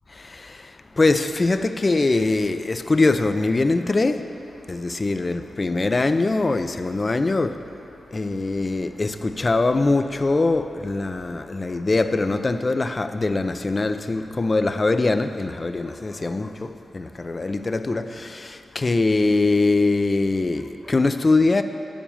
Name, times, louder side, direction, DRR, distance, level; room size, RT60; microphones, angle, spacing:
voice 1, 0.2-4.4 4.7-7.7 8.1-21.6, left 3 dB, 35° left, 0.5 m, -22 dB
10.0 x 7.2 x 7.1 m
cardioid pair, 85°, 0 cm